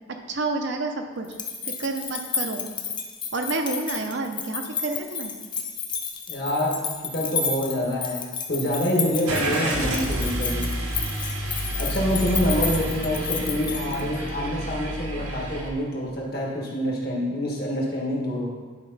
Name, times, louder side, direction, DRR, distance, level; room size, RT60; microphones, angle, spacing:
voice 1, 0.3-1.3 1.7-2.7 3.3-5.3, right 3 dB, 55° right, 4 dB, 0.7 m, -29 dB
sound 1, 1.2-14.3, left 6 dB, 20° left, 0.5 m, -32 dB
voice 2, 6.3-6.8 7.1-10.7 11.8-18.5, left 1 dB, 45° left, -2 dB, 1.6 m, -26 dB
Car / Engine starting, 9.3-15.7, right 1 dB, 90° right, 1.5 m, -29 dB
10.5 x 4.7 x 4.0 m, 1.5 s
head